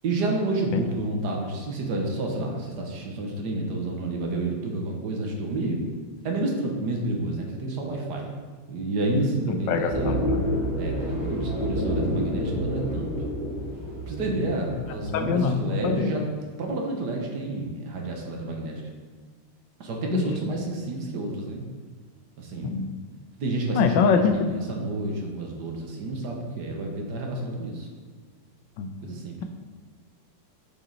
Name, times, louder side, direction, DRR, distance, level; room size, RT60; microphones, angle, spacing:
voice 1, 0.0-5.8 6.2-8.3 8.7-10.3 10.8-13.1 14.1-16.2 16.6-18.8 19.8-21.7 22.4-22.8 23.4-23.9 24.1-27.9 29.0-29.4, right 2 dB, 65° right, 0 dB, 1.6 m, -29 dB
voice 2, 9.5-10.5 14.2-14.5 15.1-16.1 20.1-20.2 22.6-22.9 23.7-24.4 28.8-28.9, left 5 dB, 80° left, 7 dB, 1.3 m, -24 dB
sound 1, 9.9-15.5, equal, 45° right, 2.6 m, -29 dB
7.1 x 5.5 x 4.0 m, 1.5 s
omnidirectional pair, 2.0 m